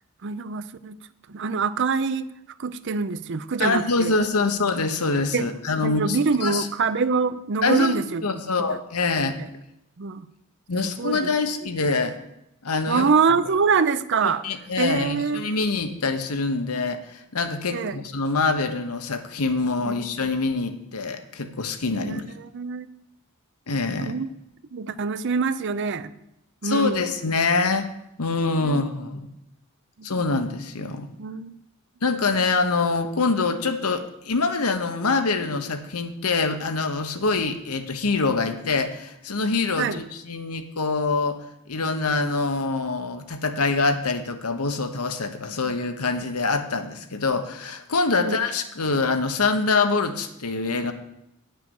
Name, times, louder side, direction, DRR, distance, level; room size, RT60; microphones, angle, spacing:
voice 1, 0.2-1.0 1.3-2.3 2.6-4.1 5.3-5.5 5.8-8.2 8.7-8.8 9.4-9.5 10.0-10.3 10.8-11.3 12.9-14.4 14.8-15.4 17.7-18.0 19.8-20.0 22.0-22.9 24.0-24.3 24.7-26.1 26.6-27.0 28.6-28.8 30.0-30.1 31.2-31.6 39.8-40.0 48.2-48.4, right 5 dB, 55° right, 14 dB, 0.6 m, -25 dB
voice 2, 3.6-6.7 7.6-7.9 8.2-9.4 10.7-12.2 12.6-13.1 14.2-22.2 23.7-24.1 26.6-27.9 28.2-29.2 30.0-31.1 32.0-41.4 41.7-50.9, left 3 dB, 85° left, 7 dB, 1.1 m, -25 dB
9.5 x 6.8 x 7.1 m, 0.83 s
head